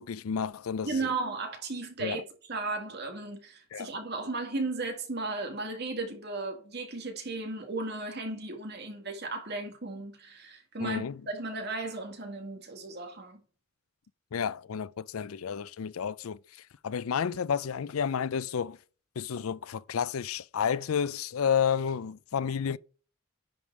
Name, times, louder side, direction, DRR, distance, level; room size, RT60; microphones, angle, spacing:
voice 1, 0.0-1.1 2.0-2.2 3.7-3.9 10.8-11.2 14.3-18.8 19.2-22.8, left 7 dB, 90° left, 0.5 m, -31 dB
voice 2, 0.8-2.2 2.5-13.4, right 3 dB, 50° right, 2.1 m, -35 dB
10.5 x 5.1 x 4.7 m
head